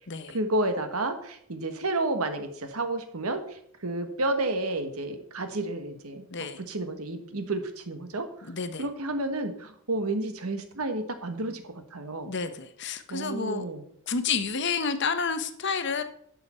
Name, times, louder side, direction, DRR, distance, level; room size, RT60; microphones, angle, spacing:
voice 1, 0.3-6.3 6.7-8.5 8.8-12.3 13.1-13.8, right 2 dB, 80° right, 8 dB, 1.3 m, -31 dB
voice 2, 8.4-8.8 12.3-13.7 14.1-16.0, left 5 dB, 50° left, 10 dB, 0.8 m, -30 dB
11.5 x 6.8 x 4.3 m, 0.67 s
head